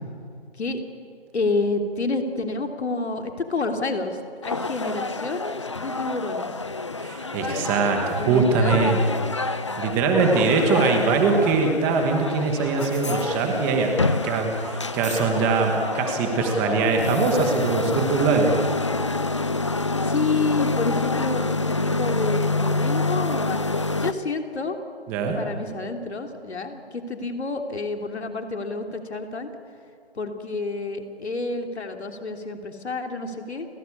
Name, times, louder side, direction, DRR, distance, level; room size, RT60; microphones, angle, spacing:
voice 1, 1.3-6.5 8.1-9.2 20.0-24.8 25.3-29.5 30.1-33.7, left 3 dB, 80° left, 4 dB, 3.2 m, -29 dB
sound 1, 4.4-24.1, left 3 dB, 30° left, 0.5 m, -27 dB
voice 2, 7.0-9.0 9.4-18.5 25.1-25.4, right 4 dB, 5° right, 4 dB, 1.1 m, -22 dB
30.0 x 17.5 x 8.5 m, 2.4 s
hypercardioid pair, 170°, 32 cm